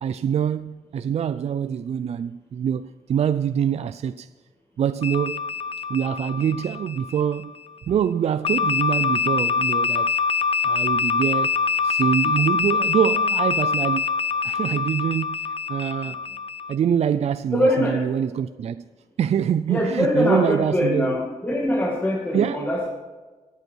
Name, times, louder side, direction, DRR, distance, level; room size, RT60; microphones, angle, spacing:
voice 1, 0.0-4.3 4.8-5.4 5.9-7.5 7.9-10.1 10.6-11.6 11.8-14.1 14.4-16.2 16.7-18.8 19.2-21.2 22.3-22.7, right 8 dB, 55° right, 0.4 m, -24 dB
sound 1, 5.0-7.5 8.4-16.7, left 5 dB, 45° left, 0.5 m, -24 dB
voice 2, 17.5-18.0 19.7-22.9, left 1 dB, 15° left, 1.9 m, -23 dB
22.5 x 8.1 x 4.6 m
wide cardioid pair, 160°, 13 cm